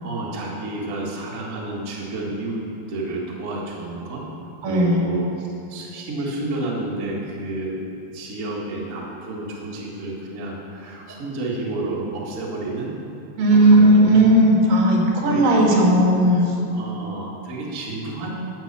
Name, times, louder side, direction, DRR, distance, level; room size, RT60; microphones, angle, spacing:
voice 1, 0.0-2.6 2.9-4.3 4.6-7.8 8.1-12.9 13.5-14.0 15.3-15.6 16.7-18.3, right 2 dB, 90° right, -4 dB, 0.7 m, -30 dB
voice 2, 4.6-5.0 13.4-16.5, right 1 dB, 60° right, -2 dB, 3.4 m, -15 dB
12.0 x 7.6 x 6.9 m, 2.9 s
omnidirectional pair, 4.9 m